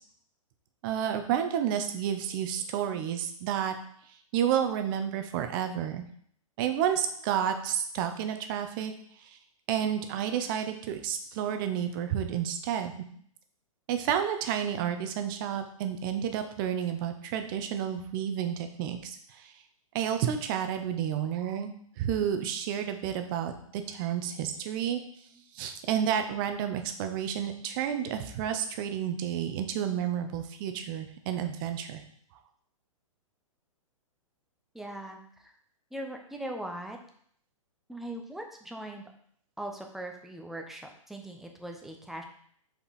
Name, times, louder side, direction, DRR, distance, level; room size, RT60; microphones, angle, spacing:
voice 1, 0.8-3.8 4.3-6.0 6.6-8.9 9.2-9.4 9.7-12.9 13.9-19.5 19.9-25.0 25.5-32.0, right 9 dB, 40° right, 7 dB, 0.8 m, -30 dB
voice 2, 34.7-35.2 35.9-37.0 37.9-39.0 39.6-42.2, right 1 dB, ahead, 2 dB, 0.7 m, -40 dB
5.4 x 4.5 x 4.1 m, 0.63 s
hypercardioid pair, 120°, 18 cm